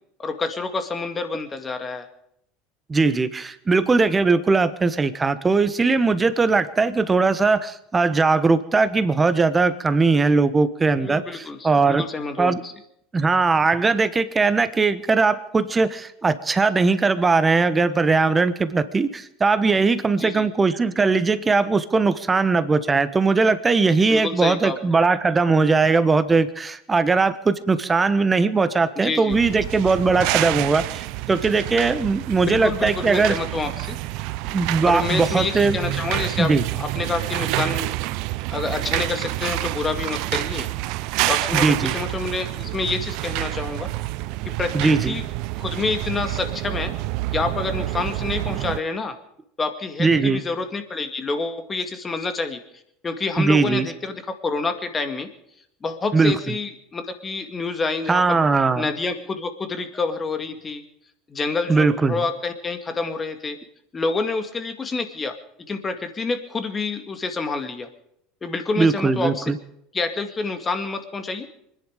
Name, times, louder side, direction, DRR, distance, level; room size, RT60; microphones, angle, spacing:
voice 1, 0.2-2.1 11.0-12.7 20.2-20.5 24.1-25.0 29.0-29.4 32.4-34.0 34.9-37.9 38.5-40.7 41.3-43.9 44.4-45.2 45.6-46.9 47.3-49.2 49.6-52.6 53.0-55.3 55.8-58.4 58.8-60.8 61.3-63.6 63.9-65.4 65.7-67.9 68.4-69.5 69.9-71.5, left 3 dB, 25° left, 7 dB, 2.2 m, -28 dB
voice 2, 2.9-12.0 12.4-12.6 13.1-33.4 34.5-35.8 36.4-36.6 41.5-41.9 44.7-45.1 50.0-50.4 53.4-53.9 56.1-56.3 58.1-58.9 61.7-62.2 68.8-69.6, right 4 dB, 20° right, 12 dB, 1.2 m, -20 dB
sound 1, 29.3-48.8, right 18 dB, 65° right, 0.6 m, -28 dB
25.0 x 10.5 x 5.1 m, 0.73 s
hypercardioid pair, 80°, 0 cm